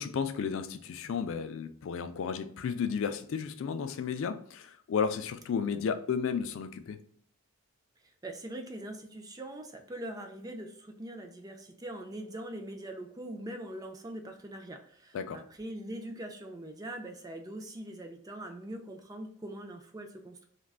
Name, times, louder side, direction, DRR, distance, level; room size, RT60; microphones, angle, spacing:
voice 1, 0.0-7.0 15.1-15.4, left 6 dB, 60° left, 0.3 m, -33 dB
voice 2, 8.0-20.4, right 1 dB, 15° right, 0.4 m, -42 dB
3.6 x 2.2 x 2.3 m
head